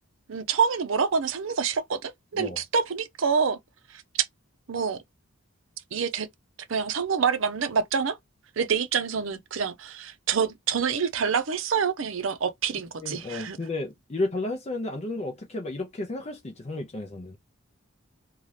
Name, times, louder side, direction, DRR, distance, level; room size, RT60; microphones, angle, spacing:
voice 1, 0.3-3.6 3.9-4.3 4.7-5.0 5.9-6.3 6.7-8.2 8.6-13.6, right 6 dB, 70° right, 0.6 m, -27 dB
voice 2, 13.0-17.4, left 2 dB, 30° left, 0.5 m, -32 dB
2.7 x 2.4 x 3.2 m
head